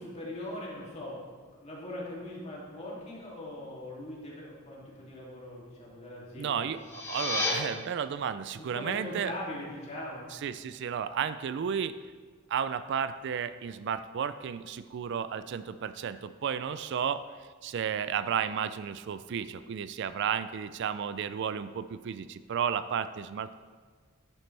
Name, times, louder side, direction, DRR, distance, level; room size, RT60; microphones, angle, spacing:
voice 1, 0.0-6.8 8.6-10.3, left 1 dB, 35° left, -5 dB, 2.6 m, -41 dB
voice 2, 6.4-9.3 10.4-12.0 12.5-17.3 17.6-23.5, right 7 dB, 60° right, 13 dB, 0.3 m, -33 dB
sound 1, 6.7-7.5, left 3 dB, 15° left, 1.5 m, -31 dB
10.5 x 9.5 x 3.3 m, 1.5 s
head